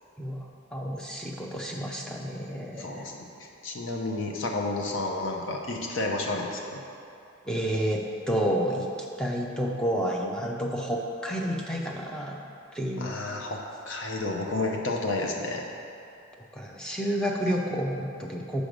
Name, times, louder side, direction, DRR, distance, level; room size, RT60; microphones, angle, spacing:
voice 1, 0.2-3.0 7.4-8.9 9.2-12.4 12.7-13.1 16.5-18.6, equal, 5° left, -1 dB, 0.5 m, -30 dB
voice 2, 2.8-3.1 3.4-6.8 13.0-15.7, left 2 dB, 60° left, 1 dB, 0.8 m, -31 dB
6.3 x 5.1 x 5.1 m, 2.7 s
head